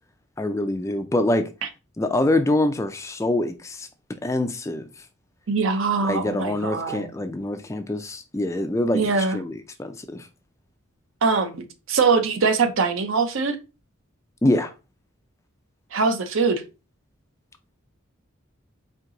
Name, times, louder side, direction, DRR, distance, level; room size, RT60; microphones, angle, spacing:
voice 1, 0.4-1.5 2.0-3.9 4.2-4.9 6.0-10.3 14.4-14.7, left 1 dB, 15° left, 0.3 m, -25 dB
voice 2, 5.5-7.1 8.9-9.4 11.2-13.6 15.9-16.6, right 4 dB, 70° right, 0.7 m, -22 dB
4.6 x 2.7 x 3.8 m
head